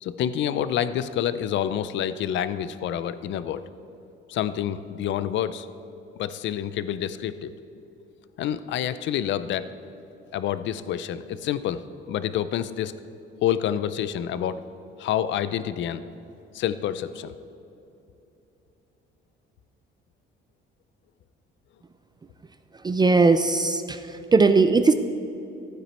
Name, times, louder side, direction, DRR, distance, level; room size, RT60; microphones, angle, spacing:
voice 1, 0.0-3.6 4.3-5.7 6.2-7.5 8.4-9.7 10.3-11.8 12.1-12.9 13.4-14.6 15.0-16.0 16.5-17.3, left 10 dB, 60° left, 13 dB, 0.5 m, -28 dB
voice 2, 22.8-24.0 24.3-24.9, right 4 dB, 20° right, 9 dB, 0.4 m, -18 dB
14.5 x 9.2 x 4.4 m, 2.9 s
cardioid pair, 125°, 21 cm